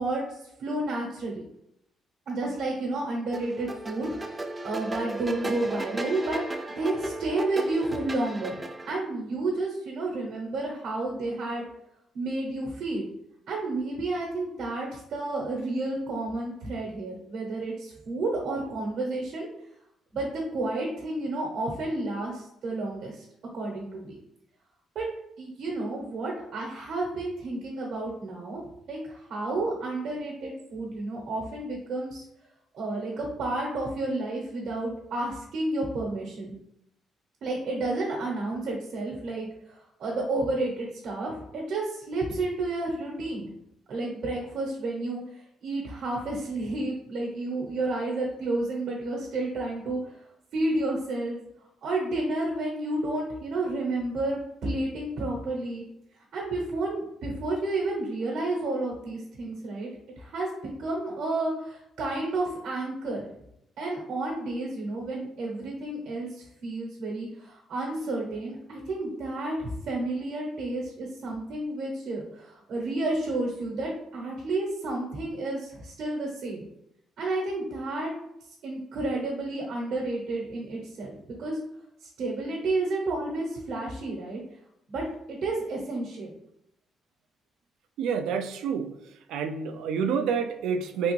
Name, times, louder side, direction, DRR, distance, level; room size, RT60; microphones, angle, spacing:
voice 1, 0.0-1.4 2.3-6.4 6.8-8.5 8.9-11.6 12.1-13.1 13.5-19.5 20.1-23.2 23.5-24.1 24.9-25.1 25.4-32.2 32.7-36.5 37.4-43.5 43.9-45.2 45.6-50.2 50.5-51.4 51.8-55.8 56.3-59.9 60.2-60.5 60.8-63.3 63.8-76.6 77.2-78.1 78.6-81.6 82.0-84.4 84.9-86.3, right 2 dB, 70° right, -2 dB, 0.9 m, -31 dB
sound 1, 3.3-9.0, right 2 dB, 20° right, 0.4 m, -36 dB
voice 2, 88.0-88.9 89.3-91.1, right 6 dB, 85° right, 7 dB, 0.3 m, -28 dB
3.4 x 2.4 x 3.2 m, 0.80 s
cardioid pair, 90°, 0 cm